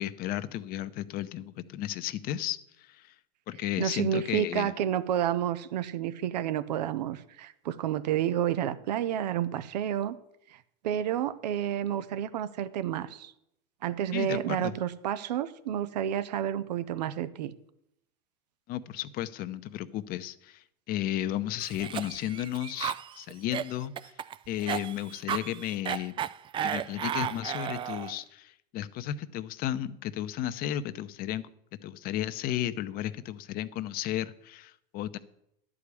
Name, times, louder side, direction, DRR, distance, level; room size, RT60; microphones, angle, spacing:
voice 1, 0.0-3.1 3.5-4.7 14.1-14.8 18.7-24.1 24.5-26.1 26.6-31.4 31.8-35.2, left 12 dB, 45° left, 14 dB, 0.7 m, -34 dB
voice 2, 3.8-10.2 10.5-13.3 13.8-17.5, right 10 dB, 85° right, 15 dB, 0.7 m, -30 dB
Cough, 21.6-28.2, right 10 dB, 25° right, 0.3 m, -34 dB
11.5 x 4.9 x 8.4 m, 0.77 s
supercardioid pair, 110°, 21 cm